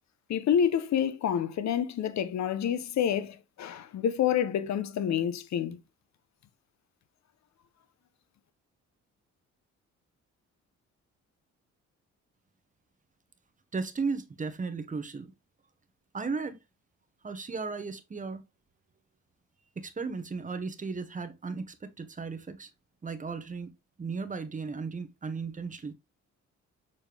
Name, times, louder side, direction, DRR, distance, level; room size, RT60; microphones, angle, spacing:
voice 1, 0.3-5.8, left 9 dB, 65° left, 0.9 m, -28 dB
voice 2, 13.7-15.3 16.1-16.6 17.2-18.4 19.8-22.7 23.0-23.7 24.0-25.9, right 4 dB, 25° right, 1.2 m, -35 dB
6.8 x 4.2 x 3.4 m
cardioid pair, 90°, 30 cm